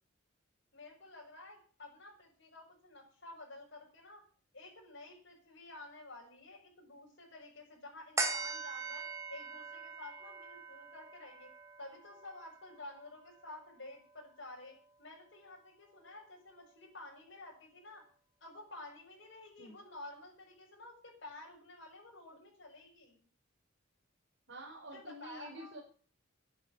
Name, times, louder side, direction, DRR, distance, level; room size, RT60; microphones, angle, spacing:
voice 1, 0.7-4.2 4.5-9.0 9.3-11.5 11.8-18.0 18.4-23.3 24.9-25.8, left 2 dB, 60° left, -2 dB, 7.0 m, -51 dB
sound 1, 8.2-14.9 15.4-15.5, right 3 dB, 15° right, 2.9 m, -42 dB
voice 2, 24.5-25.8, right 1 dB, 65° right, -1 dB, 4.0 m, -48 dB
10.5 x 9.8 x 9.0 m, 0.42 s
head